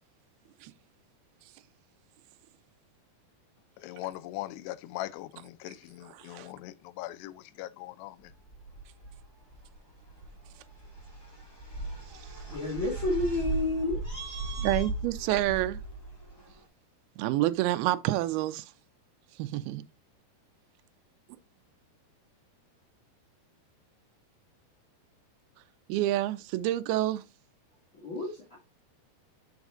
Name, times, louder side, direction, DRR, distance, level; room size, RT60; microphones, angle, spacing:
voice 1, 3.8-8.3, left 15 dB, 85° left, 2.7 m, -40 dB
voice 2, 6.1-6.5 14.6-15.8 17.2-18.7 19.4-19.8 25.9-27.2, right 15 dB, 80° right, 2.3 m, -28 dB
sound 1, 8.3-16.6, right 2 dB, 15° left, 0.9 m, -38 dB
voice 3, 12.5-14.9 27.9-28.3, left 2 dB, 35° left, 2.5 m, -31 dB
7.3 x 6.0 x 2.6 m
omnidirectional pair, 4.8 m